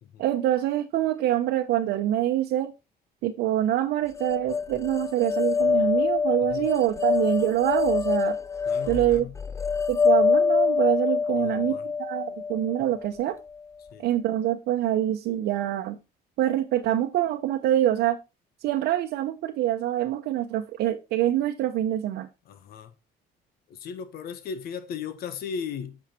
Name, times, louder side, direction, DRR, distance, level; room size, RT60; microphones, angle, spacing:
voice 1, 0.2-2.7 3.2-8.4 8.9-9.2 9.9-13.3 14.0-16.0 16.4-18.2 18.6-22.3, right 12 dB, 80° right, 1.0 m, -25 dB
sound 1, 4.2-13.3, left 5 dB, 15° left, 0.6 m, -25 dB
voice 2, 8.7-9.3 11.3-11.9 13.9-14.0 22.4-22.9 23.7-26.0, left 6 dB, 65° left, 1.2 m, -37 dB
8.6 x 5.8 x 4.3 m
cardioid pair, 110°, 17 cm